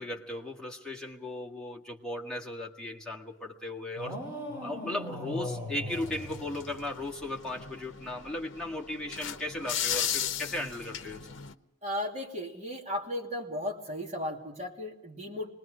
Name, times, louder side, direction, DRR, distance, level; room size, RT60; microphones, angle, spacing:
voice 1, 0.0-4.2 4.6-11.2, left 1 dB, 5° left, -3 dB, 1.9 m, -36 dB
sound 1, 4.0-7.1, left 1 dB, 10° right, 7.3 m, -39 dB
sound 2, 5.9-11.5, left 9 dB, 65° left, 0.8 m, -36 dB
voice 2, 11.8-15.5, left 1 dB, 35° right, -1 dB, 2.8 m, -35 dB
26.0 x 21.0 x 5.1 m, 0.90 s
head